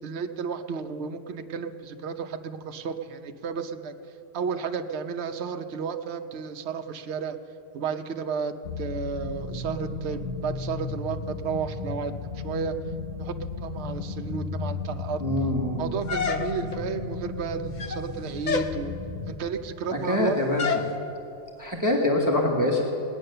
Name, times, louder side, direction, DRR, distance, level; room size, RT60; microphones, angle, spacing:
voice 1, 0.0-3.9 4.3-7.4 7.7-12.7 13.2-15.2 15.8-18.9 19.3-20.4, right 6 dB, 60° right, 6 dB, 1.0 m, -32 dB
sound 1, 8.6-19.4, left 3 dB, 60° left, 1.4 m, -34 dB
voice 2, 15.2-15.8 19.9-20.8 21.6-22.8, left 1 dB, 15° right, -1 dB, 1.4 m, -24 dB
sound 2, 16.1-16.8 17.6-18.1 18.4-18.8 20.6-20.9, left 5 dB, 45° left, 0.8 m, -28 dB
19.5 x 9.4 x 6.7 m, 2.6 s
omnidirectional pair, 1.3 m